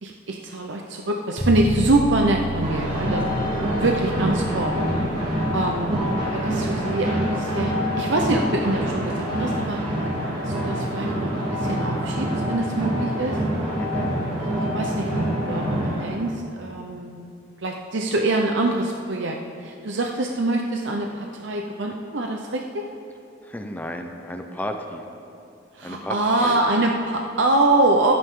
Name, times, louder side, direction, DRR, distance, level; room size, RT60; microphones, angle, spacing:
voice 1, 0.0-3.2 3.8-4.8 5.5-9.8 10.4-13.4 14.7-17.2 17.6-22.8 25.7-28.1, right 2 dB, 70° right, 1 dB, 0.8 m, -24 dB
sound 1, 1.4-11.1, equal, 25° left, 1.7 m, -33 dB
sound 2, 2.6-16.0, equal, 35° right, 3.9 m, -26 dB
voice 2, 13.8-14.1 23.4-25.0 25.8-26.1 26.4-26.6, equal, 10° left, 4 dB, 0.7 m, -33 dB
25.5 x 8.9 x 3.8 m, 2.6 s
head